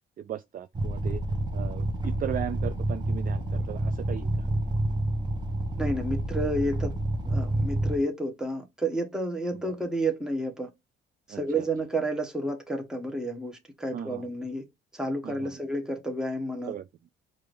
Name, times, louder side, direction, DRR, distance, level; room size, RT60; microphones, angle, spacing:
voice 1, 0.2-1.2 1.5-4.5 9.5-9.6 11.3-11.7 13.9-14.3 15.2-15.6 16.7-16.9, right 10 dB, 45° right, 0.4 m, -37 dB
sound 1, 0.8-8.0, right 1 dB, 20° right, 1.1 m, -28 dB
voice 2, 5.8-6.9 7.3-10.7 11.3-14.6 14.9-16.7, right 1 dB, 5° right, 1.1 m, -30 dB
4.7 x 2.6 x 3.2 m
cardioid pair, 90°, 20 cm